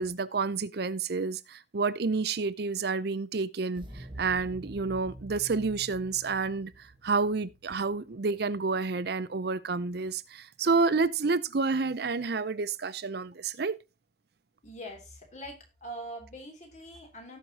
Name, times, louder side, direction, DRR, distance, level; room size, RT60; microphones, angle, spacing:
voice 1, 0.0-6.7 7.0-13.8, right 4 dB, 55° right, 0.5 m, -29 dB
sound 1, 3.7-8.6, right 1 dB, 25° right, 1.2 m, -47 dB
voice 2, 14.6-17.4, right 1 dB, 35° left, 2.9 m, -43 dB
17.5 x 5.9 x 2.8 m
head